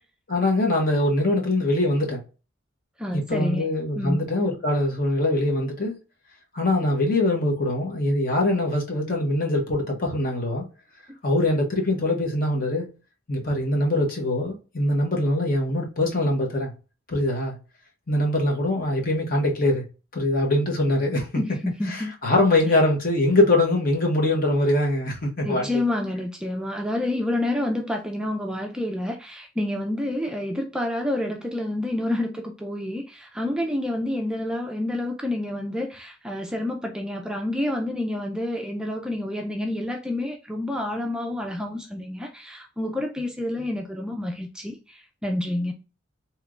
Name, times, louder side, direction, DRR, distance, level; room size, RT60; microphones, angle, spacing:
voice 1, 0.3-2.2 3.1-5.9 6.5-10.6 11.2-12.9 13.3-16.7 17.1-17.6 18.1-19.8 20.1-21.3 21.9-25.7, left 1 dB, 45° left, 1.0 m, -23 dB
voice 2, 3.0-3.7 3.9-4.2 21.4-22.1 22.6-22.7 25.4-45.7, left 1 dB, 5° right, 0.3 m, -28 dB
3.3 x 2.9 x 2.4 m
head